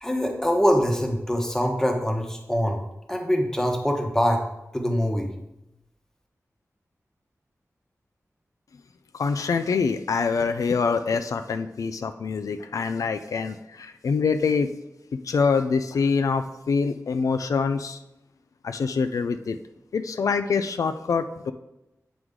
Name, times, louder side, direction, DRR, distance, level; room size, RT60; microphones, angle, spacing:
voice 1, 0.0-2.8 3.1-4.4 4.7-5.3, equal, 10° left, 2 dB, 1.0 m, -24 dB
voice 2, 9.1-14.7 15.2-18.0 18.6-19.6 19.9-21.5, left 5 dB, 85° left, 9 dB, 0.4 m, -25 dB
8.0 x 4.6 x 3.7 m, 0.91 s
wide cardioid pair, 95°, 6 cm